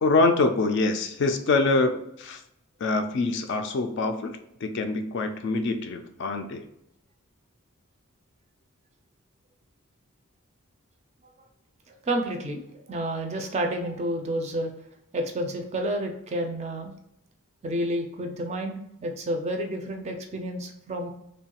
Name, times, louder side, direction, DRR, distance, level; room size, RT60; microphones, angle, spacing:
voice 1, 0.0-2.4 2.8-4.3 4.6-6.6, left 3 dB, 50° left, 7 dB, 0.3 m, -25 dB
voice 2, 12.0-12.6 12.9-14.7 15.1-16.9 17.6-21.1, right 1 dB, 30° right, 4 dB, 0.3 m, -30 dB
3.1 x 2.2 x 2.8 m, 0.78 s
head